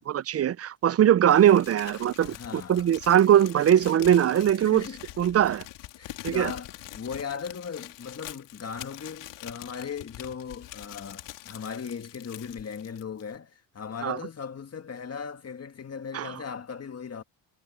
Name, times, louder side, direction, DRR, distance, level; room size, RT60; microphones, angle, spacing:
voice 1, 0.0-4.9 5.2-5.6 6.2-6.5 14.0-14.2 16.1-16.3, right 10 dB, 35° right, 0.5 m, -21 dB
Crumpling crinkling, 1.3-13.4, left 15 dB, 85° left, 3.4 m, -44 dB
voice 2, 2.2-2.9 4.6-5.0 6.0-17.2, left 6 dB, 35° left, 2.0 m, -38 dB
cardioid pair, 85°, 42 cm